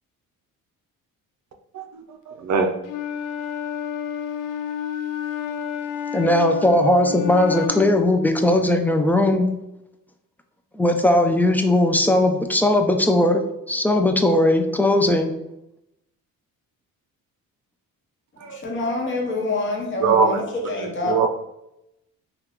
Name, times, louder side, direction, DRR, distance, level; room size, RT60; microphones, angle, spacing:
voice 1, 1.7-2.8 18.4-18.6 20.0-20.4 21.0-21.3, right 5 dB, 50° right, 4 dB, 0.6 m, -22 dB
Wind instrument woodwind instrument, 2.8-8.0, left 8 dB, 70° left, 0.5 m, -30 dB
voice 2, 6.1-9.5 10.7-13.4 13.7-15.3, left 1 dB, 5° left, 5 dB, 0.3 m, -18 dB
voice 3, 18.4-21.3, left 2 dB, 35° left, -1 dB, 1.0 m, -26 dB
2.8 x 2.4 x 3.6 m, 0.86 s
cardioid pair, 85°, 35 cm